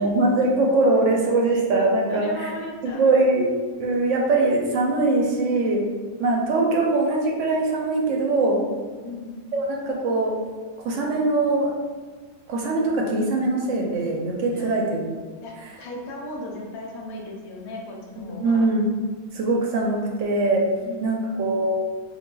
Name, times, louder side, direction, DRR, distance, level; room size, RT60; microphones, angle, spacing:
voice 1, 0.0-2.5 2.8-3.5 3.8-5.8 6.2-8.7 9.5-10.4 10.8-11.7 12.5-15.0 18.2-18.9 19.3-20.6 21.0-21.7, right 2 dB, 65° right, -1 dB, 0.8 m, -22 dB
voice 2, 2.1-3.3 9.0-9.5 14.5-14.8 15.4-18.7 20.8-21.3, left 1 dB, 80° left, -1 dB, 1.1 m, -36 dB
4.7 x 2.4 x 2.2 m, 1.5 s
omnidirectional pair, 1.5 m